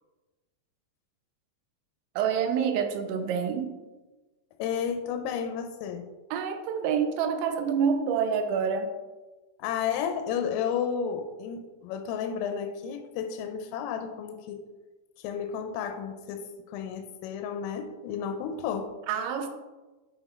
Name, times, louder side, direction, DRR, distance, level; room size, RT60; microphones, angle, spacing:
voice 1, 2.2-3.8 6.3-8.9 19.1-19.5, right 7 dB, 80° right, 7 dB, 2.8 m, -27 dB
voice 2, 4.6-6.1 9.6-14.6 15.2-18.9, left 7 dB, 90° left, 5 dB, 3.2 m, -32 dB
9.5 x 5.4 x 3.6 m, 1.2 s
omnidirectional pair, 5.8 m